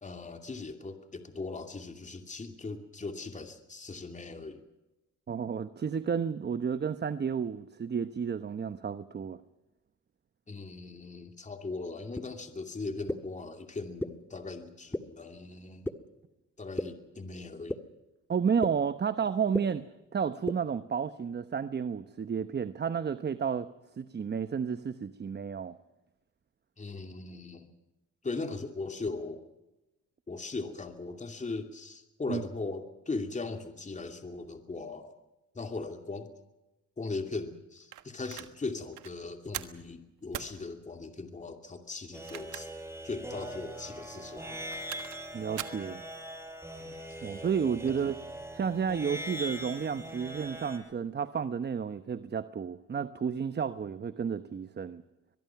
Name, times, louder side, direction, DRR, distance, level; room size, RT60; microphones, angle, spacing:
voice 1, 0.0-4.6 10.5-15.9 16.6-17.8 26.8-27.7 28.2-29.4 30.3-35.2 35.5-36.3 37.0-42.7 43.0-44.7 46.8-46.9, left 3 dB, 25° left, 5 dB, 2.6 m, -39 dB
voice 2, 5.3-9.4 18.3-19.9 20.1-23.7 24.0-25.7 32.3-32.4 45.3-46.0 47.2-48.2 48.5-55.0, right 7 dB, 35° right, 12 dB, 0.9 m, -31 dB
sound 1, 12.2-12.3 13.1-13.2 14.0-14.1 14.9-15.0 15.8-15.9 16.8-16.9 17.7-17.8 18.6-18.7 19.5-19.6 20.5-20.6, left 1 dB, 5° left, 1.5 m, -30 dB
sound 2, 37.9-38.5 38.9-39.1 39.5-39.8 40.3-40.6 42.1-42.9 43.3-43.4 44.5-45.2 45.6-45.9, right 13 dB, 85° right, 1.5 m, -41 dB
sound 3, 42.1-50.8, equal, 10° right, 5.5 m, -41 dB
22.5 x 22.5 x 5.9 m, 1.0 s
cardioid pair, 90°, 30 cm